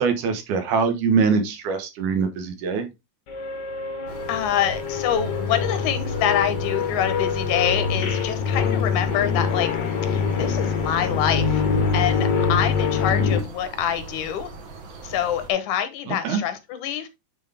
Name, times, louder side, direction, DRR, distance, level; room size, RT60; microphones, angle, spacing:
voice 1, 0.0-2.9 13.1-13.3 16.1-16.4, right 5 dB, 80° right, 7 dB, 2.7 m, -23 dB
sound 1, 3.3-13.4, left 6 dB, 55° left, 1.2 m, -24 dB
sound 2, 4.1-15.5, right 4 dB, 50° right, 1.6 m, -40 dB
voice 2, 4.3-9.7 10.0-11.6 11.9-14.5 15.0-17.1, left 10 dB, 75° left, 10 dB, 2.4 m, -26 dB
9.1 x 4.1 x 3.4 m, 0.22 s
omnidirectional pair, 3.5 m